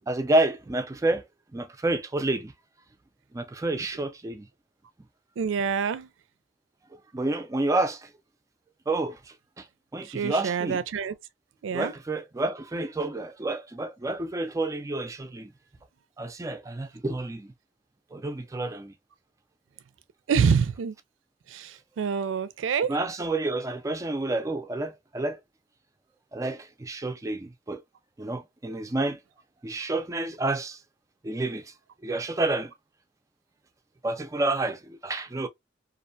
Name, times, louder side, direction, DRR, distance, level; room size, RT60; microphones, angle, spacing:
voice 1, 0.1-1.2 1.5-2.5 3.3-4.5 7.1-8.1 8.9-9.7 9.9-10.8 11.7-15.5 16.2-17.5 18.1-18.9 22.9-25.4 26.3-27.8 28.2-29.2 29.6-30.8 31.2-31.7 32.0-32.7 34.0-35.5, right 2 dB, 15° right, 0.3 m, -29 dB
voice 2, 5.4-6.1 10.1-11.1 11.6-11.9 20.3-20.9 21.5-22.9, right 6 dB, 85° right, 0.4 m, -26 dB
2.5 x 2.1 x 2.5 m
head